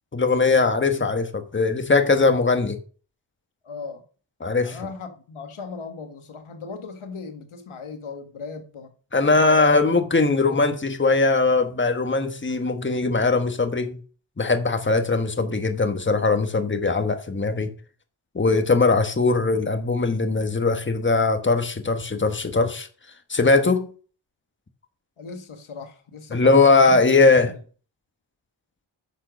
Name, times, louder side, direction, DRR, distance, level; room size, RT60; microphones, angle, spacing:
voice 1, 0.1-2.8 4.4-4.8 9.1-14.0 14.4-17.7 18.3-22.9 23.3-23.9 26.3-27.5, left 3 dB, 25° left, 1.5 m, -20 dB
voice 2, 3.6-4.0 4.6-8.9 9.4-9.8 10.2-10.6 25.2-27.0 27.4-27.5, left 4 dB, 90° left, 1.8 m, -37 dB
10.0 x 6.7 x 6.4 m
wide cardioid pair, 115°, 48 cm